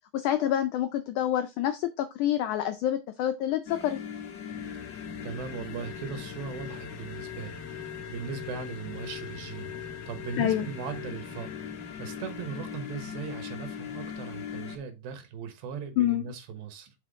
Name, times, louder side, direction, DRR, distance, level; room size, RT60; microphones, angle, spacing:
voice 1, 0.1-4.0 10.4-10.7 16.0-16.3, left 11 dB, 85° left, 1.7 m, -27 dB
sound 1, 3.7-14.8, left 7 dB, 60° left, 2.0 m, -39 dB
voice 2, 5.2-11.5 12.0-16.9, right 6 dB, 85° right, 3.0 m, -39 dB
5.9 x 5.7 x 3.6 m
omnidirectional pair, 4.1 m